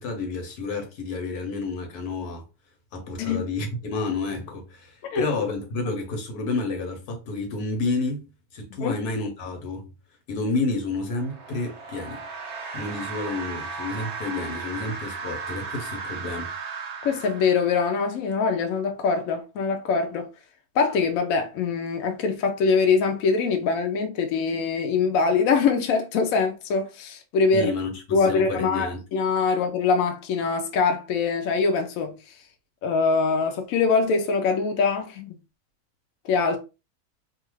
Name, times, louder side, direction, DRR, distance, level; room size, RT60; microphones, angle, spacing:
voice 1, 0.0-2.4 2.9-8.3 8.5-9.9 10.3-12.2 12.7-16.5 27.5-29.0 29.5-29.6, left 3 dB, 85° left, 1.4 m, -30 dB
sound 1, 11.0-18.1, right 5 dB, 50° right, 0.5 m, -36 dB
voice 2, 17.0-20.3 20.7-27.7 28.1-32.2 32.8-35.3 36.2-36.6, left 5 dB, 70° left, 1.0 m, -23 dB
2.7 x 2.4 x 3.0 m
omnidirectional pair, 1.6 m